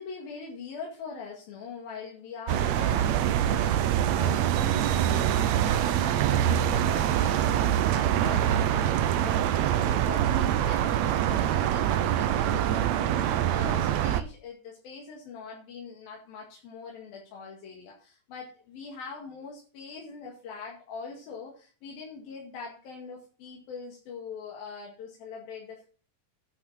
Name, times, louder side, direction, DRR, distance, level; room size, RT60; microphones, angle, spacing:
voice 1, 0.0-25.9, left 5 dB, 90° left, -2 dB, 3.9 m, -42 dB
sound 1, 2.5-14.2, right 11 dB, 85° right, 1.5 m, -25 dB
10.0 x 6.0 x 7.3 m, 0.39 s
omnidirectional pair, 4.1 m